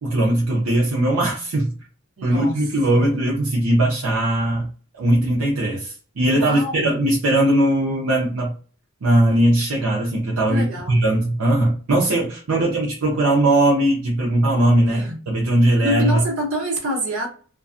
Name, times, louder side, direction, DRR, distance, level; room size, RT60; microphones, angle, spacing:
voice 1, 0.0-1.8 2.2-4.7 5.0-8.5 9.0-16.2, right 1 dB, 85° right, 0.6 m, -19 dB
voice 2, 2.2-2.6 2.9-3.1 6.3-7.0 10.5-11.0 12.5-12.8 14.9-15.2 15.8-17.3, equal, 70° right, 1.0 m, -26 dB
2.3 x 2.3 x 2.5 m
head